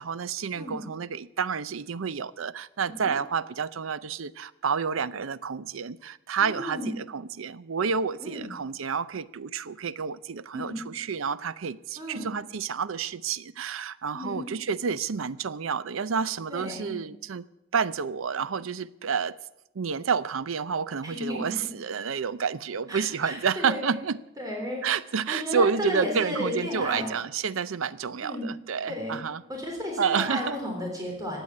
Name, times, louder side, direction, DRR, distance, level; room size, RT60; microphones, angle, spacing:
voice 1, 0.0-17.4 17.7-19.4 19.8-24.2 24.8-29.4 30.0-30.6, right 6 dB, 90° right, 0.6 m, -29 dB
voice 2, 6.4-6.9 8.2-8.5 10.5-10.8 12.0-12.3 14.1-14.4 16.5-16.9 21.0-21.6 22.9-24.0 24.4-24.9 25.3-27.1 28.2-28.5 28.9-29.2 29.5-31.4, left 1 dB, 20° right, 3.4 m, -33 dB
16.0 x 9.4 x 8.5 m
head